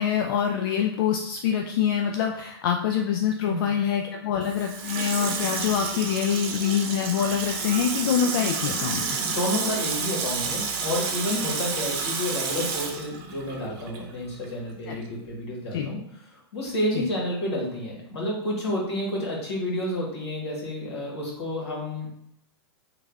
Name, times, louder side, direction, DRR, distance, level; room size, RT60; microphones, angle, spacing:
voice 1, 0.0-9.2 14.9-15.0 15.7-15.9 17.0-17.1, left 8 dB, 55° left, 3 dB, 0.4 m, -25 dB
Water tap faucet / Sink (filling or washing), 4.4-14.1 14.4-14.5, right 5 dB, 50° right, 0.8 m, -30 dB
voice 2, 9.2-22.3, left 1 dB, 80° left, -4 dB, 1.5 m, -30 dB
3.2 x 2.4 x 3.4 m, 0.76 s
hypercardioid pair, 110°, 14 cm